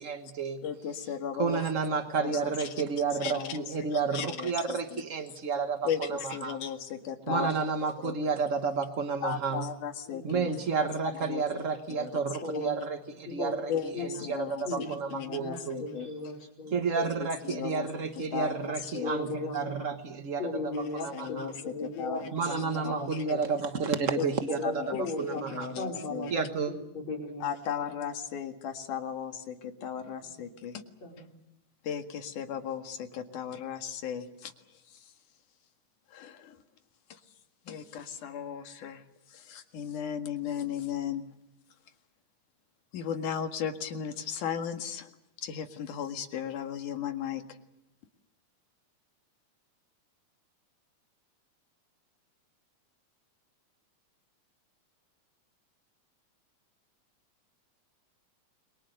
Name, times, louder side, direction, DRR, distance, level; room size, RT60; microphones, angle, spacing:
voice 1, 0.0-0.6 1.4-6.6 7.3-9.7 10.2-13.7 14.0-15.8 16.7-21.5 22.3-25.7 26.3-26.7, right 5 dB, 60° right, 8 dB, 0.8 m, -31 dB
voice 2, 0.6-1.7 2.2-3.6 4.1-5.0 5.9-7.6 8.0-8.2 9.2-10.5 10.8-10.9 11.1-11.4 11.9-12.2 13.7-16.1 17.0-17.1 17.4-17.9 18.2-19.1 20.7-20.8 21.1-22.3 22.8-23.2 24.2-24.3 24.6-26.3 27.4-30.8 31.8-34.5 34.9-35.0 36.1-36.6 37.1-37.2 37.7-39.0 39.3-41.3 42.9-45.1 45.4-47.4, left 8 dB, 85° left, 7 dB, 3.4 m, -36 dB
voice 3, 10.1-10.6 12.4-12.9 13.3-13.5 13.9-14.1 14.7-16.7 19.0-19.9 20.4-23.4 24.5-25.4 25.8-27.5 27.8-28.0 30.3-30.4 31.0-31.3, left 3 dB, 60° left, 2 dB, 6.0 m, -37 dB
29.5 x 23.0 x 6.6 m, 0.84 s
omnidirectional pair, 3.5 m